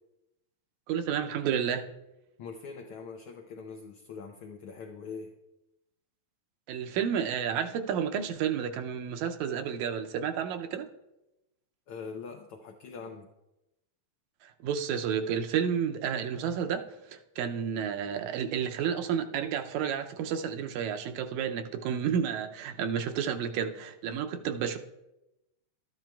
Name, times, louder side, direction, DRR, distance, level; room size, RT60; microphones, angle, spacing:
voice 1, 0.9-1.9 6.7-10.9 14.4-24.8, right 8 dB, 80° right, 7 dB, 1.9 m, -31 dB
voice 2, 2.4-5.4 11.9-13.3, left 5 dB, 80° left, 3 dB, 1.2 m, -43 dB
13.0 x 10.5 x 2.3 m, 0.94 s
omnidirectional pair, 3.4 m